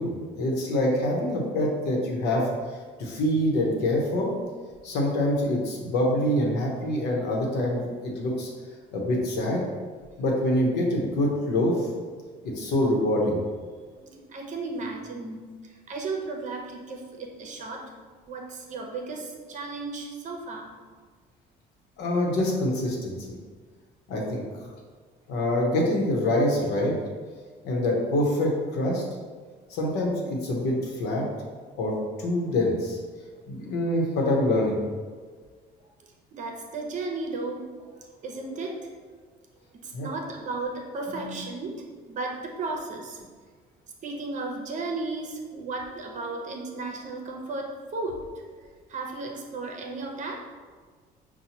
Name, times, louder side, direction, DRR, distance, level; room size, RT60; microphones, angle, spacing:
voice 1, 0.0-2.5 3.0-4.3 4.8-8.5 8.9-9.6 10.2-11.9 12.4-13.4 22.0-23.2 24.1-24.7 25.3-26.9 27.6-29.0 29.7-31.2 31.8-33.0 33.5-34.8 39.9-40.1 41.1-41.4, left 1 dB, 85° left, -1 dB, 0.9 m, -25 dB
voice 2, 13.9-17.9 18.3-20.7 36.3-39.0 39.7-43.2 44.0-50.4, right 3 dB, 45° right, 1 dB, 0.7 m, -35 dB
5.6 x 2.3 x 2.9 m, 1.5 s
cardioid pair, 110°, 17 cm